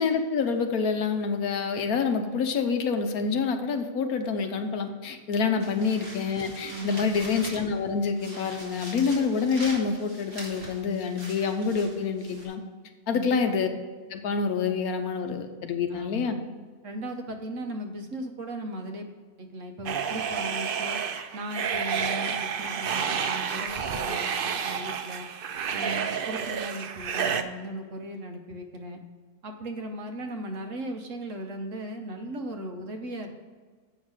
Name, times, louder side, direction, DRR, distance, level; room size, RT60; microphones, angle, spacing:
voice 1, 0.0-12.6 13.1-13.7 14.1-16.4, left 5 dB, 70° left, 6 dB, 1.3 m, -27 dB
voice 2, 5.4-5.9 6.7-7.1 13.1-13.6 15.9-16.3 16.8-19.1 19.4-21.0 21.3-25.3 25.7-29.0 29.4-33.3, right 1 dB, 55° right, 4 dB, 1.2 m, -37 dB
sound 1, 5.6-7.8 8.2-12.5, right 1 dB, 35° right, 2.8 m, -43 dB
sound 2, 19.9-27.4, right 7 dB, 75° right, 0.5 m, -30 dB
7.9 x 5.9 x 6.3 m, 1.5 s
omnidirectional pair, 1.7 m